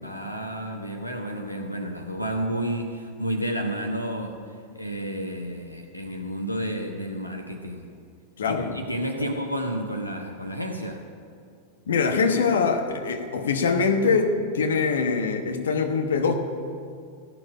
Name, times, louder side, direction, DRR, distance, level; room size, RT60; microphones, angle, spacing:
voice 1, 0.0-4.4 4.7-7.9 8.4-11.0, right 1 dB, 90° left, 3 dB, 1.0 m, -31 dB
voice 2, 8.4-8.8 9.2-9.3 11.9-16.3, left 5 dB, 65° left, 5 dB, 1.2 m, -23 dB
15.0 x 7.0 x 9.6 m, 2.3 s
figure-of-eight pair, 90°, 0 cm